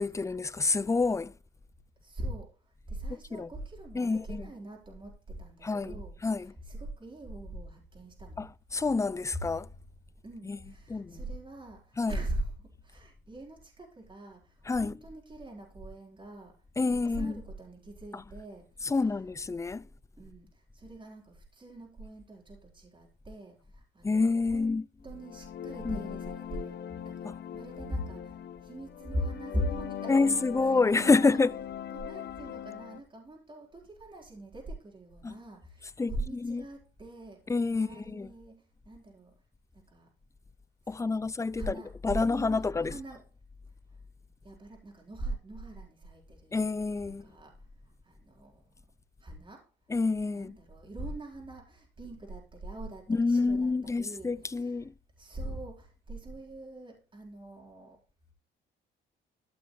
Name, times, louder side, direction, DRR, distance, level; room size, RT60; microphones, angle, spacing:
voice 1, 0.0-1.3 3.3-3.5 3.9-4.5 5.6-6.5 8.4-8.5 8.7-9.7 10.4-10.6 10.9-11.2 12.0-12.2 14.7-14.9 16.8-17.4 18.1-18.2 18.8-19.9 24.0-24.8 25.8-26.0 30.1-31.5 35.2-35.4 36.0-36.6 37.5-38.3 40.9-41.8 42.0-42.9 46.5-47.2 49.9-50.5 53.1-54.9, left 3 dB, 15° left, 0.5 m, -28 dB
voice 2, 2.0-2.5 2.9-8.4 9.3-9.5 10.2-16.5 16.9-19.0 20.2-24.8 25.0-26.8 27.0-28.3 28.6-30.7 31.0-31.4 31.9-37.4 37.7-39.3 39.9-40.1 41.0-43.2 44.4-46.6 47.2-47.5 48.0-48.6 49.2-49.6 50.3-54.8 55.2-58.0, right 1 dB, 25° right, 4.6 m, -41 dB
sound 1, 25.1-33.0, left 9 dB, 60° left, 1.1 m, -41 dB
14.5 x 6.6 x 3.3 m
cardioid pair, 90°, 20 cm